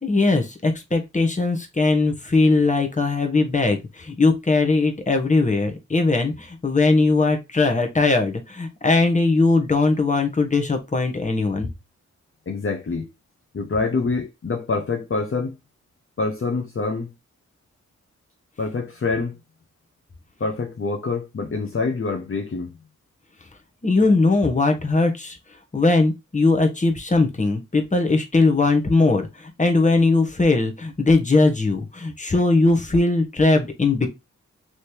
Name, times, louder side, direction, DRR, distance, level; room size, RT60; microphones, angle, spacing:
voice 1, 0.0-11.7 23.8-25.4 25.7-34.1, left 3 dB, 25° left, 1.3 m, -20 dB
voice 2, 12.5-13.1 13.5-15.5 16.2-17.1 18.6-19.4 20.4-22.7, left 4 dB, 45° left, 1.0 m, -26 dB
3.4 x 3.1 x 4.4 m
cardioid pair, 65°, 30 cm